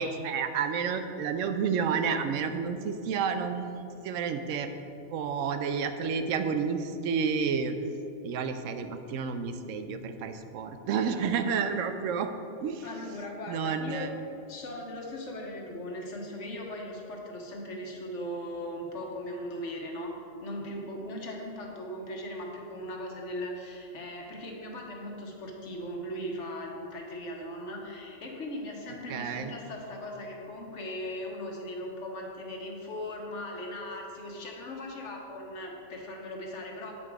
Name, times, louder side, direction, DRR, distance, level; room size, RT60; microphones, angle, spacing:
voice 1, 0.0-4.7 5.1-7.7 8.2-12.3 12.6-12.9 13.5-14.1 29.1-29.5, right 6 dB, 85° right, 8 dB, 1.0 m, -30 dB
voice 2, 12.8-14.1 14.5-20.1 20.4-36.9, left 1 dB, 65° left, 0 dB, 1.4 m, -38 dB
8.5 x 5.5 x 4.6 m, 2.8 s
omnidirectional pair, 1.3 m